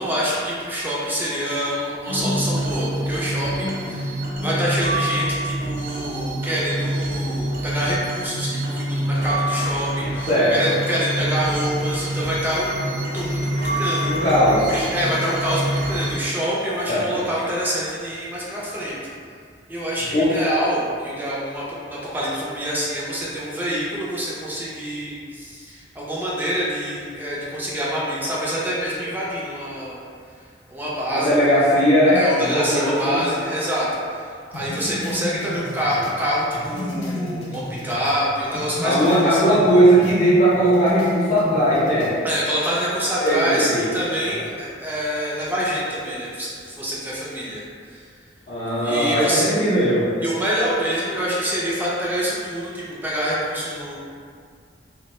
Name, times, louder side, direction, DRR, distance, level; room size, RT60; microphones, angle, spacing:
voice 1, 0.0-14.1 14.7-19.1 19.7-30.0 30.7-31.3 32.1-39.4 42.2-47.6 47.9-48.0 48.6-49.5 50.2-54.0, equal, 10° right, -7 dB, 0.4 m, -26 dB
sound 1, 2.1-16.2, right 1 dB, 70° right, 0.6 m, -26 dB
voice 2, 10.3-10.7 14.1-14.7 16.9-17.3 20.1-20.4 31.1-33.2 35.0-35.1 38.8-42.1 43.2-43.8 44.3-44.4 48.5-50.1, equal, 35° left, -12 dB, 0.6 m, -18 dB
sound 2, 34.5-38.2 38.5-40.2 40.5-42.2, left 1 dB, 85° left, 0.5 m, -32 dB
2.2 x 2.1 x 2.9 m, 2.1 s
head